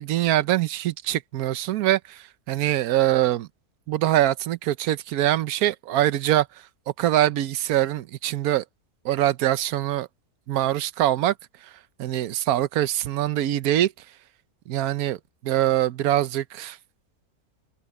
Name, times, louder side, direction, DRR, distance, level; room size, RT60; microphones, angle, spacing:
voice 1, 0.0-3.5 3.9-6.5 7.0-8.6 9.0-10.1 10.5-11.3 11.6-11.7 12.0-13.9 14.7-16.8, right 13 dB, 75° right, 1.2 m, -23 dB
open air
omnidirectional pair, 1.6 m